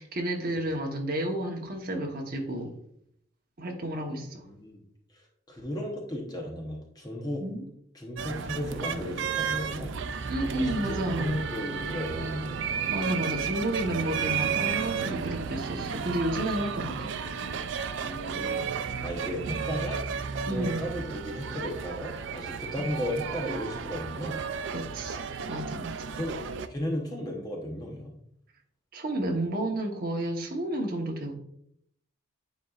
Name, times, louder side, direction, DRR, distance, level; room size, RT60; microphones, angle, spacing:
voice 1, 0.0-2.7 3.6-4.4 7.4-7.6 10.3-11.4 12.9-17.1 20.5-20.8 24.7-25.2 25.5-26.1 28.9-31.4, right 1 dB, 45° right, 1.0 m, -31 dB
voice 2, 4.4-4.8 5.1-7.4 7.9-9.9 10.5-12.6 18.0-20.0 20.5-24.4 26.2-28.1, equal, 20° left, 0.9 m, -35 dB
sound 1, 8.2-26.7, right 6 dB, 60° right, 0.4 m, -33 dB
9.3 x 4.2 x 2.4 m
head